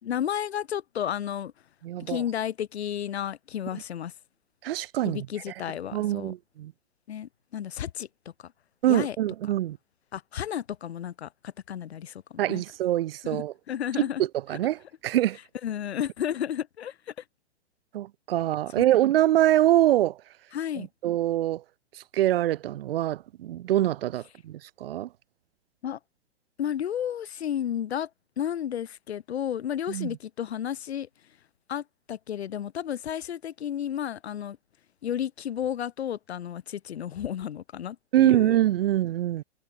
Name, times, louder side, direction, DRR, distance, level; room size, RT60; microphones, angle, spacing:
voice 1, 0.0-1.5 2.0-4.1 5.0-6.3 7.1-8.1 8.4-8.5 8.9-9.2 10.1-12.6 13.2-14.2 15.6-17.2 18.8-18.9 20.5-20.9 25.8-26.0 26.6-28.1 28.4-31.1 31.7-34.6 35.0-38.6, left 10 dB, 65° left, 5.0 m, -32 dB
voice 2, 1.8-2.2 4.6-5.2 5.9-6.7 8.8-9.8 12.4-13.5 14.2-15.4 17.9-20.2 20.8-21.6 22.1-25.1 29.9-30.1 38.1-39.4, right 13 dB, 55° right, 0.9 m, -24 dB
hypercardioid pair, 130°, 34 cm